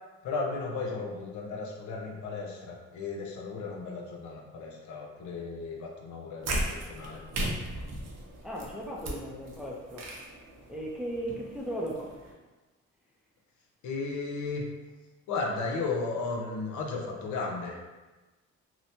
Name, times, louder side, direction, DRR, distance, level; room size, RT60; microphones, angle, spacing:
voice 1, 0.2-7.2 13.8-14.7 15.3-17.8, left 3 dB, 70° left, 0 dB, 0.6 m, -35 dB
sound 1, 6.4-12.3, right 1 dB, 60° right, 0.7 m, -37 dB
voice 2, 8.4-10.1 10.7-12.1, right 1 dB, ahead, -3 dB, 0.4 m, -36 dB
2.8 x 2.1 x 2.7 m, 1.2 s
cardioid pair, 90°, 30 cm